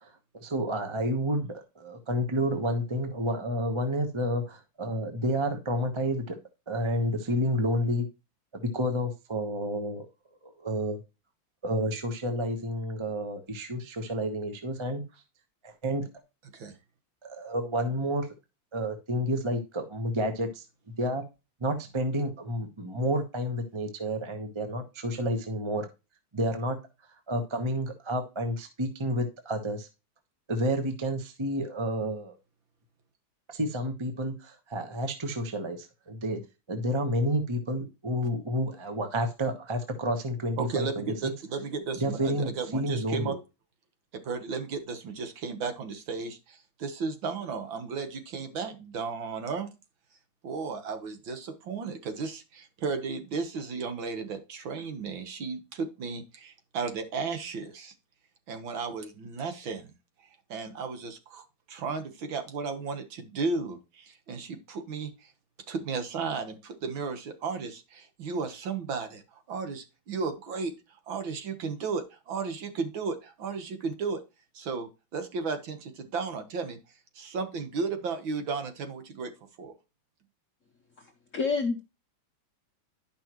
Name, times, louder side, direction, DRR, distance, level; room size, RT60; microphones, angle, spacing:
voice 1, 0.0-6.4 6.7-8.1 8.5-10.1 10.4-11.0 11.6-15.0 15.6-16.1 17.2-18.3 18.7-20.6 21.0-21.2 21.6-25.9 26.3-26.8 27.3-29.9 30.5-32.4 33.5-36.4 36.7-41.1 42.0-43.4, equal, 25° right, 6 dB, 0.6 m, -30 dB
voice 2, 40.6-43.4 44.1-49.7 50.4-57.9 58.5-59.9 60.5-65.3 65.7-70.7 71.1-74.2 74.5-76.8 77.2-79.3 79.6-79.8, right 4 dB, 65° right, 7 dB, 2.0 m, -34 dB
voice 3, 81.3-81.8, left 4 dB, 50° left, 2 dB, 0.9 m, -27 dB
11.5 x 5.5 x 3.0 m, 0.27 s
omnidirectional pair, 2.4 m